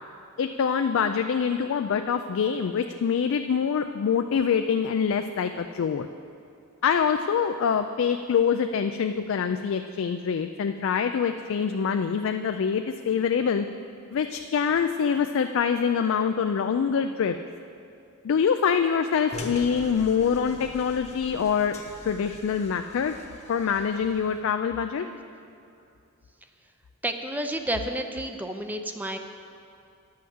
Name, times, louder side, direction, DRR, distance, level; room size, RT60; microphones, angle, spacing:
voice 1, 0.4-6.1 6.8-13.7 14.1-17.4 18.2-21.7 22.0-23.1 23.5-25.1, left 7 dB, 65° left, 7 dB, 0.3 m, -25 dB
sound 1, 19.3-24.4, left 2 dB, 30° left, 1.0 m, -42 dB
voice 2, 27.0-29.2, right 1 dB, 10° right, 6 dB, 0.4 m, -30 dB
10.5 x 5.7 x 7.7 m, 2.5 s
head